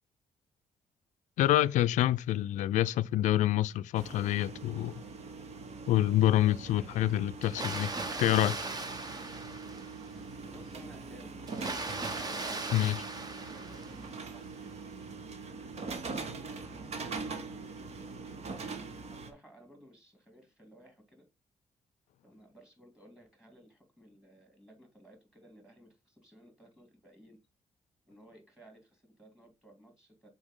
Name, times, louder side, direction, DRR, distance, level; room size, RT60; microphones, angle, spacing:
voice 1, 1.4-5.0 5.9-7.9 8.2-8.6 12.7-13.0, left 13 dB, 85° left, 0.4 m, -27 dB
sound 1, 3.9-19.3, right 4 dB, 60° right, 1.3 m, -43 dB
Water, 7.4-10.2 11.5-14.3, right 3 dB, 30° right, 1.1 m, -38 dB
voice 2, 10.4-11.9 12.3-14.9 15.6-21.3 22.2-27.4 28.1-30.3, right 1 dB, 5° right, 2.9 m, -57 dB
6.3 x 4.5 x 3.7 m
cardioid pair, 100°, 12 cm